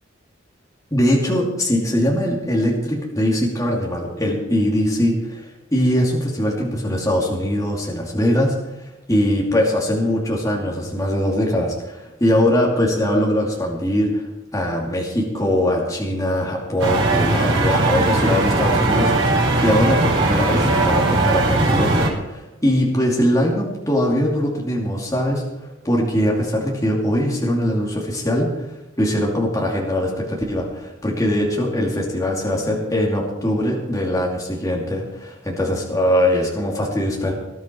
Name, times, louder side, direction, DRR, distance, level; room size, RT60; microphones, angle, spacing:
voice 1, 0.9-14.3 14.5-19.1 19.6-37.3, equal, 15° left, -2 dB, 2.7 m, -21 dB
sound 1, 16.8-22.1, right 2 dB, 80° right, 4.7 m, -19 dB
19.5 x 11.5 x 4.6 m, 1.0 s
head